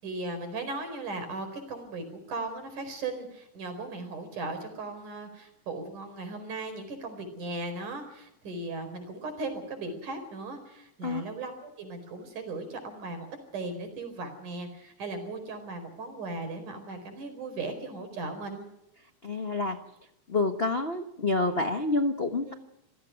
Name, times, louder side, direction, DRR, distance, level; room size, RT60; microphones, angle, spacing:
voice 1, 0.0-13.3 13.5-18.7 22.5-22.6, right 3 dB, 85° right, 7 dB, 6.0 m, -37 dB
voice 2, 19.2-19.8 20.3-22.5, left 3 dB, 80° left, 5 dB, 0.5 m, -28 dB
27.0 x 17.0 x 5.9 m, 0.86 s
omnidirectional pair, 3.5 m